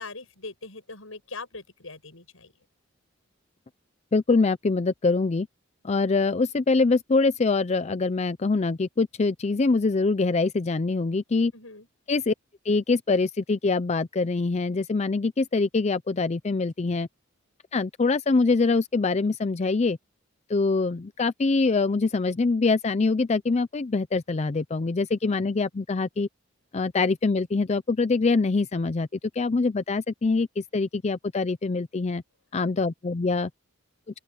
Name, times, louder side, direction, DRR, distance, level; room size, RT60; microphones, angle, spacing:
voice 1, 0.0-2.5 11.5-11.9, left 3 dB, 80° left, 7.6 m, -41 dB
voice 2, 4.1-5.5 5.8-11.5 12.1-12.3 12.6-17.1 17.7-20.0 20.5-26.3 26.7-29.1 29.4-32.2 32.5-33.5, left 3 dB, 35° left, 0.5 m, -24 dB
open air
head